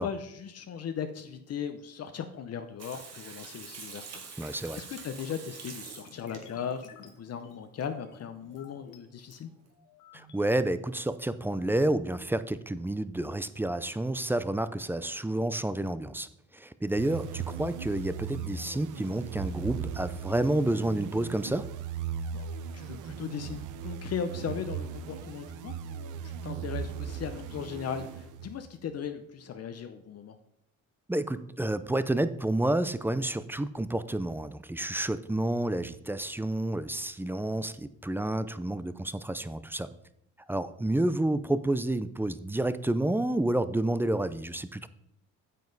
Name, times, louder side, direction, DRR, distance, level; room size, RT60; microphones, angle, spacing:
voice 1, 0.0-9.5 22.3-22.5 22.7-30.4, left 7 dB, 55° left, 8 dB, 0.7 m, -38 dB
Water tap faucet / Sink (filling or washing), 2.8-7.1 8.6-8.7 8.9-9.0 9.3-9.4, right 5 dB, 55° right, 1.9 m, -45 dB
voice 2, 4.4-4.8 10.1-16.3 16.5-21.7 31.1-39.9 40.5-44.9, right 1 dB, 5° right, 14 dB, 0.5 m, -29 dB
sound 1, 5.9-9.0 9.5-10.5, left 6 dB, 85° left, 1.3 m, -54 dB
sound 2, 17.0-28.7, right 7 dB, 90° right, 0.6 m, -38 dB
9.3 x 7.5 x 4.0 m, 0.76 s
cardioid pair, 90°, 30 cm